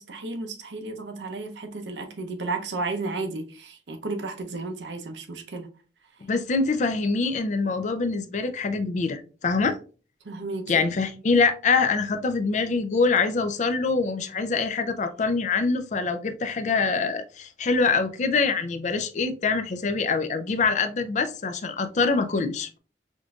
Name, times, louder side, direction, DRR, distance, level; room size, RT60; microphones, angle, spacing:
voice 1, 0.0-5.7 10.2-10.9, right 3 dB, 85° right, 0.7 m, -33 dB
voice 2, 6.2-9.8 10.7-22.8, left 4 dB, 45° left, 0.4 m, -24 dB
5.0 x 2.6 x 2.3 m
head